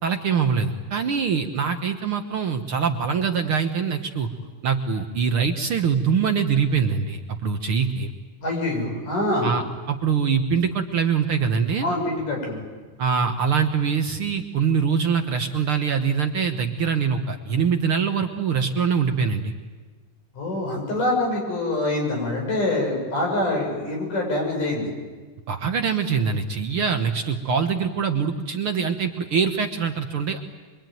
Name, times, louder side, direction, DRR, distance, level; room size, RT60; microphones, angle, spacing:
voice 1, 0.0-4.3 4.6-8.1 9.4-11.9 13.0-19.5 25.5-30.4, right 6 dB, 55° right, 4 dB, 1.6 m, -23 dB
voice 2, 8.4-9.5 11.8-12.6 20.3-24.9, left 2 dB, 90° left, 0 dB, 8.5 m, -25 dB
26.0 x 23.0 x 9.2 m, 1.4 s
omnidirectional pair, 3.6 m